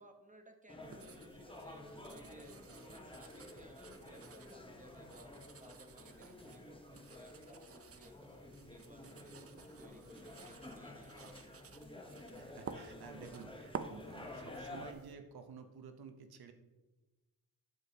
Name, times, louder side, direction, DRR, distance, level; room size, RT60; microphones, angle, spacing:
voice 1, 0.0-11.4, right 1 dB, 20° right, 6 dB, 1.0 m, -60 dB
sound 1, 0.7-14.9, left 1 dB, 15° left, 1.0 m, -52 dB
sound 2, 0.8-15.1, right 5 dB, 40° right, 0.6 m, -53 dB
voice 2, 12.2-16.5, right 6 dB, 80° right, 8 dB, 0.9 m, -53 dB
9.8 x 7.0 x 2.8 m, 1.1 s
cardioid pair, 70°, 37 cm